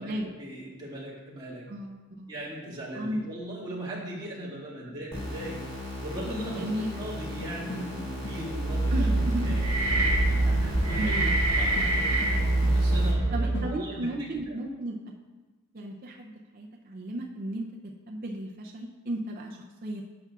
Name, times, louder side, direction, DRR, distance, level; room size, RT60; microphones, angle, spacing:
voice 1, 0.0-1.7 2.3-9.2 9.4-14.1 14.5-14.6, right 1 dB, 20° right, -7 dB, 2.0 m, -39 dB
voice 2, 1.7-2.3 2.9-3.3 6.5-6.9 8.9-9.6 11.0-11.3 13.3-15.0 15.7-17.7 18.1-20.0, right 1 dB, 40° right, 0 dB, 0.5 m, -34 dB
sound 1, 5.1-13.1, left 1 dB, 20° left, 1.7 m, -38 dB
sound 2, 6.5-8.5 8.7-13.8, left 1 dB, 50° left, 1.4 m, -40 dB
sound 3, 8.5-13.8, right 2 dB, 90° right, 1.2 m, -25 dB
11.5 x 6.9 x 2.4 m, 1.3 s
head